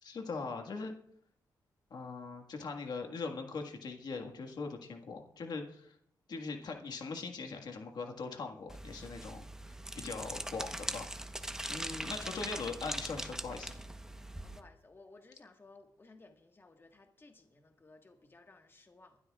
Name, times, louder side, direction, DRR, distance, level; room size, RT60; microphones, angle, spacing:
voice 1, 0.0-0.9 1.9-6.0 6.3-11.1 11.7-13.7, left 4 dB, 65° left, 4 dB, 1.7 m, -41 dB
sound 1, 8.7-14.6, right 1 dB, 5° right, 1.0 m, -41 dB
voice 2, 11.9-12.9 14.4-19.2, left 3 dB, 30° left, 4 dB, 1.6 m, -58 dB
25.5 x 12.5 x 2.4 m, 0.70 s
cardioid pair, 85°, 8 cm